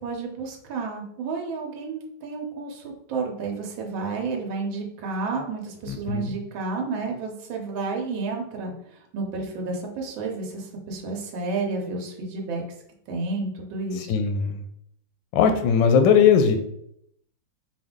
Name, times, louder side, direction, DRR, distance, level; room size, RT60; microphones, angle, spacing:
voice 1, 0.0-12.6 13.1-14.1, right 3 dB, 75° right, 0 dB, 1.5 m, -31 dB
voice 2, 5.9-6.4 14.1-14.6 15.3-16.6, left 7 dB, 75° left, 6 dB, 1.1 m, -19 dB
4.6 x 2.6 x 3.6 m, 0.73 s
omnidirectional pair, 2.2 m